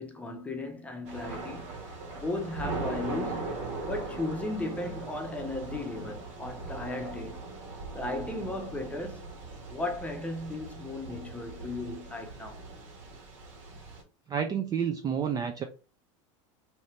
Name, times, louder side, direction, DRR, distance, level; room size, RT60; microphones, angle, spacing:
voice 1, 0.0-1.8 2.1-3.6 3.9-7.4 7.9-9.3 9.7-12.6, left 2 dB, 10° left, 0.7 m, -36 dB
Thunder / Rain, 1.0-14.0, right 3 dB, 70° right, 1.5 m, -40 dB
voice 2, 14.3-15.7, right 7 dB, 25° right, 0.4 m, -29 dB
2.8 x 2.7 x 3.2 m
supercardioid pair, 120°, 17 cm